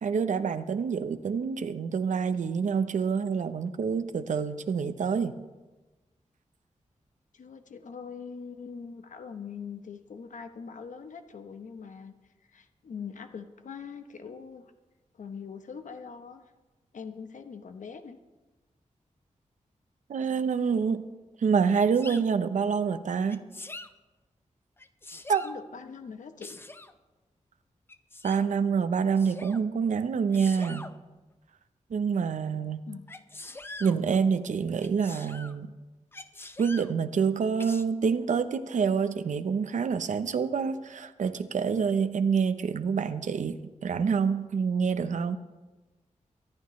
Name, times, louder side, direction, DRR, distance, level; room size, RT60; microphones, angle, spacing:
voice 1, 0.0-5.4 20.1-21.0 21.4-23.5 25.3-25.4 28.2-30.9 31.9-32.8 33.8-35.7 36.6-45.4, right 6 dB, 75° right, 9 dB, 0.8 m, -27 dB
voice 2, 7.3-12.1 12.5-14.7 15.1-16.4 16.9-18.2 25.4-26.6 32.9-33.1, left 6 dB, 75° left, 8 dB, 1.0 m, -42 dB
Sneeze, 21.7-22.2 23.3-23.9 24.8-25.6 26.4-26.9 27.9-28.4 29.1-29.6 30.3-30.9 33.1-34.0 34.8-35.5 36.1-36.9 37.6-37.8, left 2 dB, 20° left, 0.6 m, -44 dB
23.5 x 11.5 x 3.2 m, 1.2 s
wide cardioid pair, 160°, 13 cm